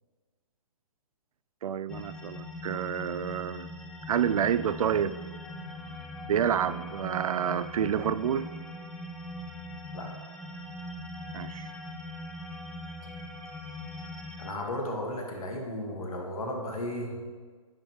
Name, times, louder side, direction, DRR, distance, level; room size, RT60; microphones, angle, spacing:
voice 1, 1.6-3.7 4.1-5.1 6.3-8.5 11.3-11.7, right 8 dB, 75° right, 15 dB, 0.4 m, -28 dB
sound 1, 1.9-14.5, left 1 dB, 5° left, 0.4 m, -41 dB
voice 2, 14.4-17.2, left 1 dB, 75° left, 1 dB, 1.8 m, -34 dB
10.0 x 6.1 x 3.1 m, 1.5 s
hypercardioid pair, 135°, 18 cm